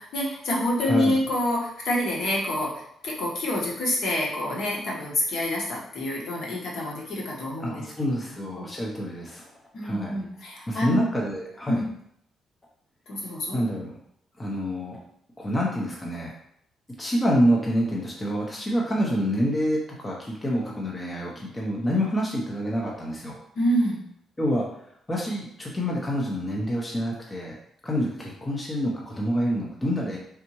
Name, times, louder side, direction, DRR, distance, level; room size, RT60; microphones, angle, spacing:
voice 1, 0.0-7.8 8.5-8.7 9.7-11.1 11.7-11.8 13.1-13.6 23.5-24.1, left 1 dB, 60° left, -4 dB, 1.2 m, -27 dB
voice 2, 0.8-1.2 7.6-9.4 9.8-10.2 10.7-11.8 13.5-13.9 14.4-15.0 15.4-16.3 17.0-23.4 24.4-24.7 25.1-27.5 27.8-30.2, equal, 15° left, -3 dB, 0.6 m, -27 dB
4.0 x 3.5 x 3.0 m, 0.71 s
cardioid pair, 150°, 0 cm